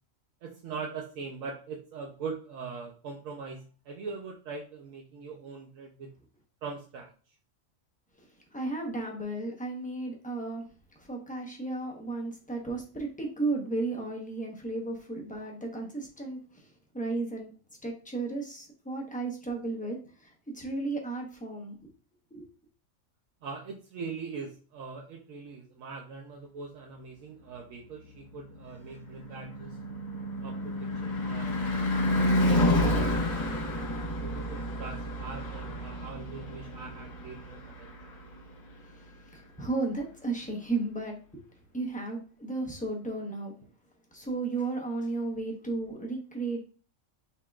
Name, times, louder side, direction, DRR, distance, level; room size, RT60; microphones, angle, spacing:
voice 1, 0.4-6.1 6.6-7.1 23.4-29.8 30.4-30.6 31.0-31.8 32.1-33.5 34.0-37.9, right 5 dB, 75° right, 0 dB, 1.1 m, -42 dB
voice 2, 8.5-10.6 11.0-16.6 16.9-17.5 17.8-21.7 22.3-22.4 39.3-41.2 41.7-43.5 44.1-46.6, right 3 dB, 5° left, 0 dB, 0.8 m, -34 dB
Car passing by / Truck / Engine, 28.4-38.7, left 1 dB, 70° left, 1.8 m, -30 dB
5.5 x 3.7 x 2.3 m, 0.38 s
omnidirectional pair, 1.4 m